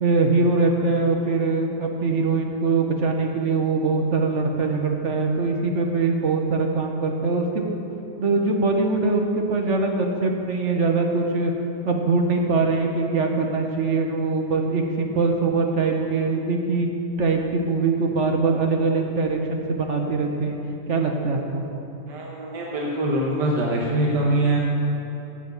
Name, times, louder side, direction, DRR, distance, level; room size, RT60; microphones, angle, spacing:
voice 1, 0.0-7.6 8.2-11.5 11.8-20.6 20.9-21.6, right 3 dB, 50° right, 2 dB, 1.1 m, -22 dB
voice 2, 22.1-24.6, right 1 dB, 90° right, -3 dB, 1.7 m, -23 dB
8.8 x 7.4 x 8.1 m, 2.9 s
omnidirectional pair, 1.8 m